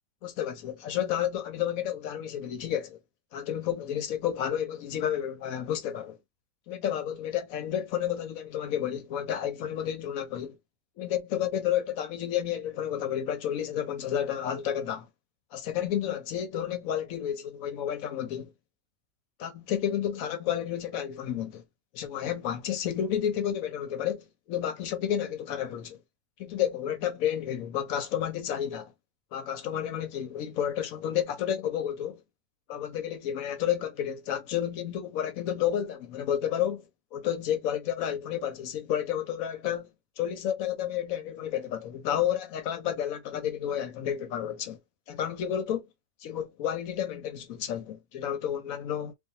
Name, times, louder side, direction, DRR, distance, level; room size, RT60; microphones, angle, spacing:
voice 1, 0.2-3.0 3.3-6.2 6.7-10.6 11.0-15.1 15.5-18.5 19.4-21.6 21.9-26.0 26.4-28.9 29.3-32.2 32.7-39.9 40.2-44.8 45.1-45.9 46.2-49.1, left 10 dB, 70° left, 0.9 m, -31 dB
2.6 x 2.3 x 2.7 m
omnidirectional pair, 1.7 m